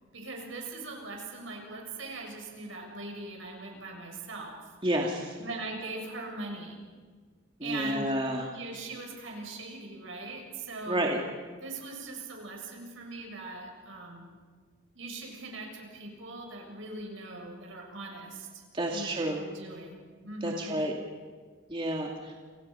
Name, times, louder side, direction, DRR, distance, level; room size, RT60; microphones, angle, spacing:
voice 1, 0.1-4.6 5.4-6.8 7.6-8.2 8.5-11.0 11.6-14.3 14.9-18.6 18.9-20.8, right 2 dB, 75° right, 1 dB, 7.1 m, -41 dB
voice 2, 4.8-5.4 7.6-8.5 10.9-11.2 18.7-19.4 20.4-20.9 21.7-22.3, right 1 dB, 25° right, 0 dB, 2.4 m, -30 dB
29.5 x 28.0 x 5.7 m, 1.5 s
head